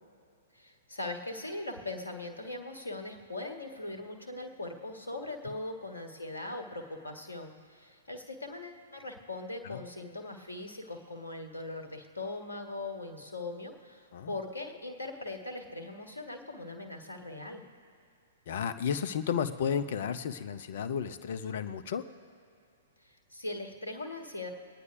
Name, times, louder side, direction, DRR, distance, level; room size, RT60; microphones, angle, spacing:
voice 1, 0.5-17.6 23.3-24.5, left 2 dB, 80° left, 4 dB, 1.6 m, -40 dB
voice 2, 18.5-22.0, left 7 dB, 55° left, 11 dB, 0.7 m, -33 dB
23.5 x 9.6 x 2.6 m, 2.4 s
figure-of-eight pair, 110°, 0 cm